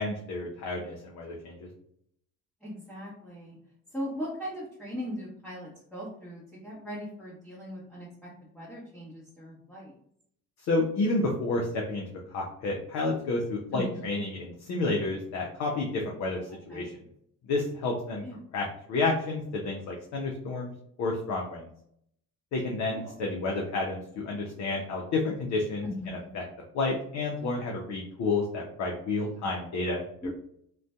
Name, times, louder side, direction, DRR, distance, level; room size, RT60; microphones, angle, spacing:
voice 1, 0.0-1.7 10.7-12.0 12.3-16.4 16.7-16.9 17.4-18.2 18.5-20.7 21.0-21.7 22.5-25.8 26.3-26.4 26.7-30.3, left 3 dB, 40° left, 0 dB, 0.5 m, -30 dB
voice 2, 2.6-3.6 3.9-9.9 13.7-14.2 16.7-16.8 18.2-18.4 22.9-23.1 25.8-26.3 30.2-30.3, equal, ahead, -8 dB, 0.9 m, -39 dB
2.5 x 2.2 x 2.2 m, 0.69 s
figure-of-eight pair, 60°, 46 cm